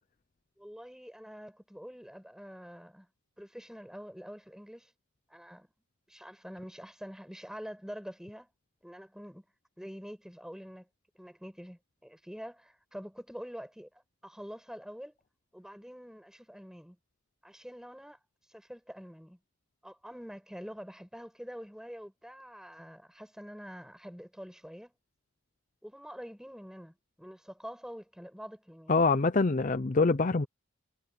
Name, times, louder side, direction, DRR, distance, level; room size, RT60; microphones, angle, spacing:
voice 1, 0.6-3.1 3.4-4.9 5.3-5.7 6.1-8.5 8.8-9.4 9.8-10.9 11.1-15.2 15.5-17.0 17.4-18.2 18.5-19.4 19.8-24.9 25.8-28.9, equal, ahead, 7.2 m, -46 dB
voice 2, 28.9-30.5, left 3 dB, 35° left, 0.5 m, -25 dB
head